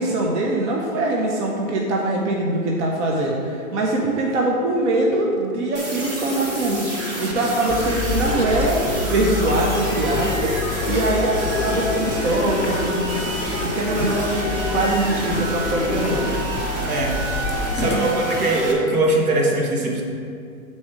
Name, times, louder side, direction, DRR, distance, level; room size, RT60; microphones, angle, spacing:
voice 1, 0.0-8.8 9.1-13.3 13.6-16.4 17.8-18.1, right 2 dB, 50° right, -1 dB, 0.8 m, -23 dB
sound 1, 4.8-16.6, left 5 dB, 35° left, 0.5 m, -31 dB
sound 2, 5.7-18.7, right 1 dB, 25° right, 1.0 m, -29 dB
sound 3, 7.7-18.0, left 3 dB, 15° left, 1.0 m, -29 dB
voice 2, 17.8-20.0, right 2 dB, 80° right, -1 dB, 1.5 m, -21 dB
6.1 x 4.2 x 4.8 m, 2.3 s
hypercardioid pair, 145°, 43 cm